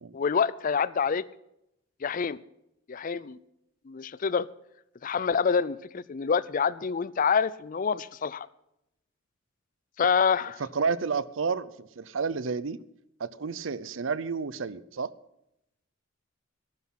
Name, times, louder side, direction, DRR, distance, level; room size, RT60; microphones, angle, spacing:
voice 1, 0.1-1.2 2.0-2.4 2.9-3.4 3.9-4.5 5.0-8.5 10.0-10.6, left 6 dB, 40° left, 19 dB, 0.4 m, -26 dB
voice 2, 10.6-12.8 13.2-15.1, right 5 dB, 65° right, 18 dB, 0.6 m, -31 dB
14.0 x 12.0 x 5.7 m, 0.83 s
head